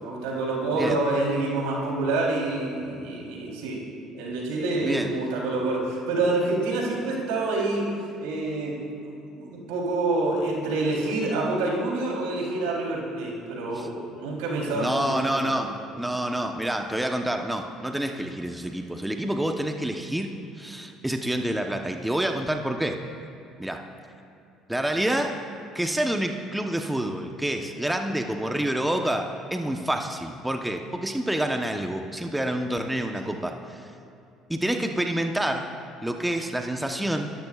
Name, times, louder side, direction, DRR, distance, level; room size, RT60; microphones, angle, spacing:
voice 1, 0.0-3.8 4.1-7.9 8.2-8.9 9.3-15.7 33.2-33.3, right 2 dB, 80° right, -3 dB, 3.6 m, -27 dB
voice 2, 14.7-23.0 23.6-23.8 24.7-25.4 25.7-33.9 34.5-35.7 36.0-37.3, right 1 dB, 5° right, 4 dB, 1.0 m, -28 dB
25.5 x 14.0 x 2.5 m, 2.7 s
hypercardioid pair, 65°, 0 cm